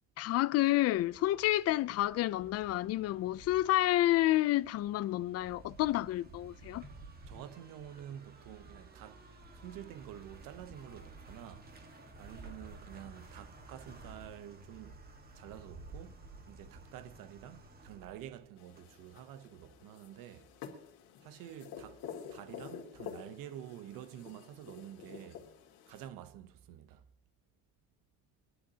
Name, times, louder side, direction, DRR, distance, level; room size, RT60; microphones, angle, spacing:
voice 1, 0.2-6.8, left 15 dB, 50° left, 0.4 m, -29 dB
sound 1, 0.9-19.1, right 2 dB, 30° right, 1.5 m, -53 dB
voice 2, 7.3-9.2 9.6-11.7 12.2-15.0 15.3-20.5 21.2-22.0 22.3-25.4 25.9-27.0, right 11 dB, 80° right, 0.9 m, -49 dB
sound 2, 18.6-26.1, left 7 dB, 90° left, 2.4 m, -49 dB
23.5 x 11.0 x 2.8 m
cardioid pair, 150°, 33 cm